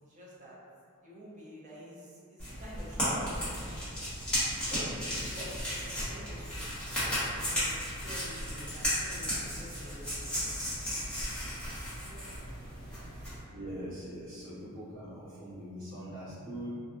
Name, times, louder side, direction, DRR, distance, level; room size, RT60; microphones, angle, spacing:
voice 1, 0.0-0.6 1.0-3.9 4.7-10.3 11.9-12.3 12.9-13.0 14.3-14.5, equal, 35° right, -6 dB, 0.5 m, -49 dB
sound 1, 2.4-13.4, equal, 5° left, 0.9 m, -34 dB
voice 2, 13.2-16.7, right 1 dB, 65° right, -13 dB, 1.0 m, -42 dB
2.5 x 2.3 x 2.4 m, 2.3 s
head